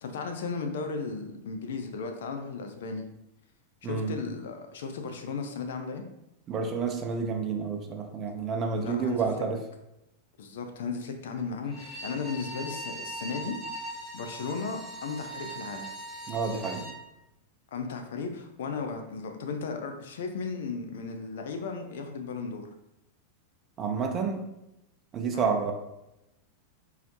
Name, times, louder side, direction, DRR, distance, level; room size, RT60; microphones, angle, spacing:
voice 1, 0.0-3.1 3.8-6.0 8.8-9.2 10.4-13.9 14.1-15.9 17.7-22.7 25.3-25.5, left 4 dB, 60° left, 5 dB, 0.4 m, -35 dB
voice 2, 3.8-4.2 6.5-9.6 16.3-16.9 23.8-24.5 25.1-25.7, right 5 dB, 30° right, 4 dB, 0.5 m, -29 dB
Bowed string instrument, 11.6-17.0, right 1 dB, ahead, 0.9 m, -40 dB
3.9 x 2.0 x 2.7 m, 0.87 s
figure-of-eight pair, 90°, 0 cm